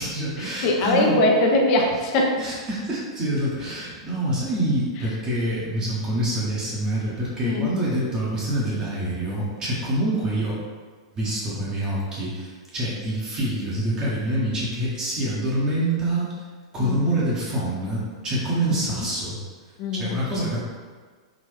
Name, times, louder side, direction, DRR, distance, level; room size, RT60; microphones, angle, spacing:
voice 1, 0.0-1.2 2.4-10.6 11.1-16.3 16.7-19.4 20.0-20.6, right 1 dB, 25° right, -7 dB, 1.0 m, -26 dB
voice 2, 0.6-2.4 7.4-7.7 16.8-17.2 19.8-20.2, left 1 dB, 40° left, 1 dB, 0.6 m, -21 dB
3.8 x 2.5 x 3.4 m, 1.5 s
figure-of-eight pair, 100°, 3 cm